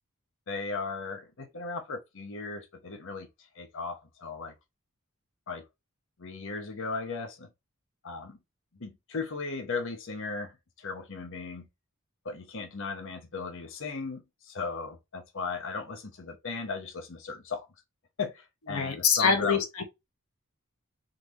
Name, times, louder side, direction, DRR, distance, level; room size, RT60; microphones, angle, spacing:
voice 1, 0.5-3.3 3.5-4.5 5.5-5.6 6.2-7.5 8.0-8.4 8.8-11.7 12.2-17.7 18.2-19.6, left 4 dB, 65° left, 1.0 m, -36 dB
voice 2, 18.7-19.8, left 6 dB, 90° left, 1.0 m, -25 dB
3.9 x 3.3 x 4.0 m
head